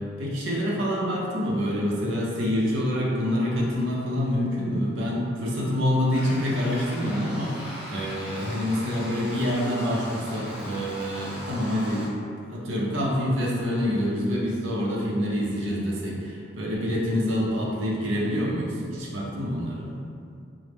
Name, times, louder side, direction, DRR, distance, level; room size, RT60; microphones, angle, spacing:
voice 1, 0.0-12.1 12.4-19.9, equal, 80° right, -4 dB, 0.6 m, -26 dB
sound 1, 6.1-12.1, equal, 5° right, 0.6 m, -39 dB
3.1 x 2.0 x 3.3 m, 2.4 s
head